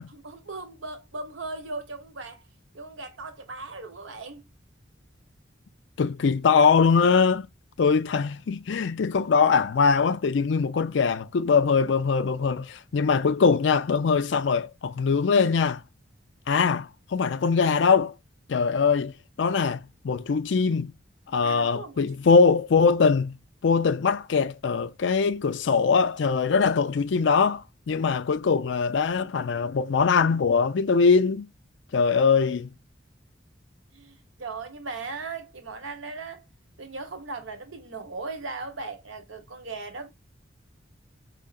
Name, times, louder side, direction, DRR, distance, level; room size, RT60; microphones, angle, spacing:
voice 1, 0.1-2.4 2.7-4.5 7.8-7.9 21.4-22.0 22.3-22.5 33.9-36.4 36.8-40.1, right 3 dB, 85° right, 1.1 m, -38 dB
voice 2, 6.0-7.5 7.8-15.8 16.5-18.1 18.5-19.1 19.4-20.9 21.3-23.4 23.6-31.5 31.9-32.7, left 5 dB, 70° left, 0.4 m, -22 dB
5.0 x 2.7 x 2.4 m
head